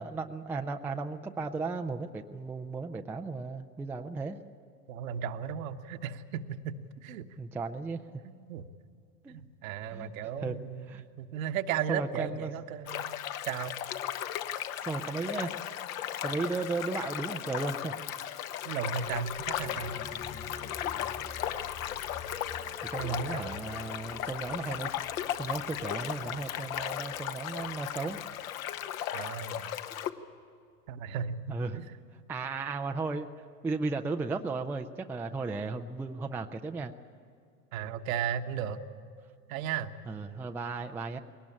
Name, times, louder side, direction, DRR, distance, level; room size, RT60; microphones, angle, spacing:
voice 1, 0.0-4.4 7.4-8.0 9.2-9.4 9.9-10.1 10.4-10.6 10.9-11.0 11.9-12.5 14.8-15.6 16.2-17.9 22.8-24.9 25.4-28.2 31.5-31.8 32.3-33.3 33.6-36.9 40.1-41.2, right 3 dB, 5° right, 5 dB, 0.4 m, -35 dB
voice 2, 4.9-7.2 8.5-8.6 9.3-13.1 13.5-13.8 18.6-19.9 23.0-23.5 29.1-29.6 30.9-31.4 31.7-32.0 37.7-38.8 39.5-39.9, right 8 dB, 55° right, 8 dB, 1.3 m, -35 dB
water flows over rock, 12.9-30.1, left 11 dB, 60° left, 1.2 m, -36 dB
sound 1, 19.0-28.3 28.7-28.8, left 5 dB, 20° left, 1.4 m, -47 dB
21.5 x 18.5 x 8.7 m, 2.4 s
figure-of-eight pair, 95°, 48 cm